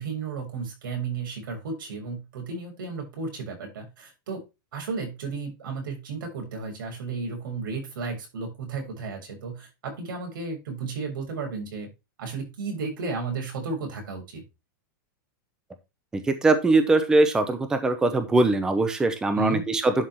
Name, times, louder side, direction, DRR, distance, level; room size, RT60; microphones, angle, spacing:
voice 1, 0.0-4.4 4.7-11.9 12.2-14.4 19.3-19.6, right 4 dB, 90° right, 2 dB, 6.7 m, -33 dB
voice 2, 16.1-19.9, right 2 dB, 5° right, 9 dB, 0.8 m, -21 dB
11.0 x 6.6 x 3.1 m, 0.24 s
supercardioid pair, 180°, 11 cm